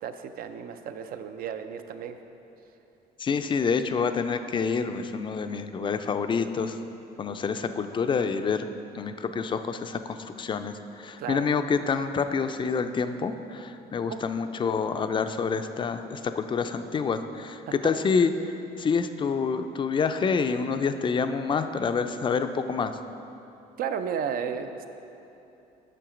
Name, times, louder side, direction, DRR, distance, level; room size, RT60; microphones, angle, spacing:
voice 1, 0.0-2.2 11.2-11.5 14.1-14.2 17.7-17.9 23.8-24.7, right 7 dB, 60° right, 9 dB, 0.5 m, -33 dB
voice 2, 3.2-6.8 7.2-8.6 8.9-18.5 18.8-22.9, left 5 dB, 30° left, 9 dB, 0.4 m, -27 dB
7.7 x 6.4 x 5.0 m, 2.9 s
cardioid pair, 110°, 17 cm